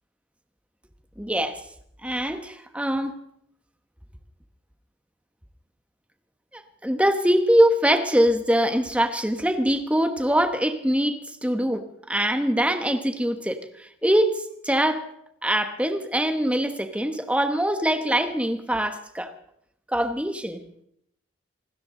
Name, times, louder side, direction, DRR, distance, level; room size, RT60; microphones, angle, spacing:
voice 1, 1.2-1.6 2.0-3.1 6.5-15.0 15.4-19.3 19.9-20.6, equal, 5° right, 8 dB, 1.1 m, -23 dB
27.0 x 13.0 x 3.9 m, 0.72 s
head